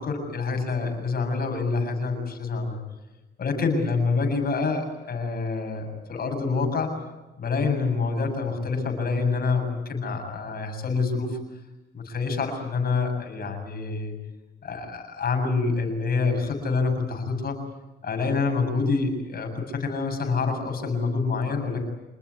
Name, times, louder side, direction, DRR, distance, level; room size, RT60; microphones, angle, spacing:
voice 1, 0.0-2.8 3.4-6.9 7.4-11.4 11.9-14.2 14.6-17.6 18.0-21.8, left 4 dB, 50° left, 5 dB, 7.3 m, -26 dB
27.0 x 20.5 x 9.7 m, 1.1 s
cardioid pair, 90°, 20 cm